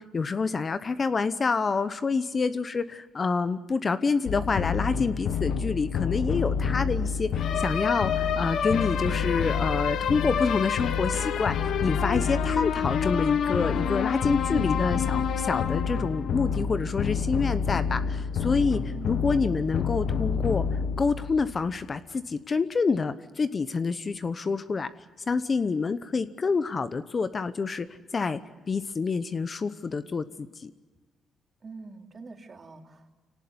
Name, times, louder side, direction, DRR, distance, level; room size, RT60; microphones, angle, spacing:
voice 1, 0.0-24.9 25.3-27.9 28.1-28.4 28.7-30.7, left 4 dB, 35° left, 12 dB, 0.9 m, -27 dB
sound 1, 4.3-21.9, left 6 dB, 70° left, 1.2 m, -27 dB
voice 2, 18.9-19.6 31.6-33.1, right 4 dB, 35° right, 3 dB, 3.2 m, -45 dB
26.0 x 18.0 x 9.6 m, 1.4 s
cardioid pair, 95°, 0 cm